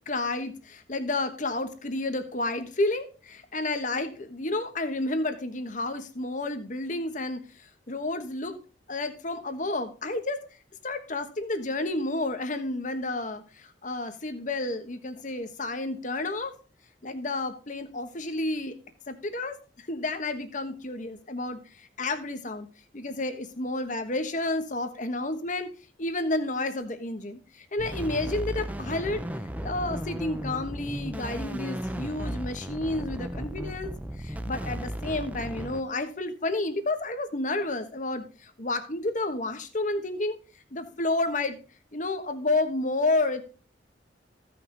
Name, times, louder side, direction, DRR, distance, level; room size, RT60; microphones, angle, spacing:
voice 1, 0.1-8.6 8.9-10.4 10.8-16.5 17.0-18.8 19.1-22.7 22.9-25.7 26.0-29.2 29.6-33.9 34.2-40.4 40.7-41.6 41.9-43.4, left 2 dB, 40° left, 8 dB, 1.3 m, -31 dB
sound 1, 27.8-35.8, equal, 10° right, 0.8 m, -35 dB
15.5 x 5.9 x 4.0 m, 0.35 s
head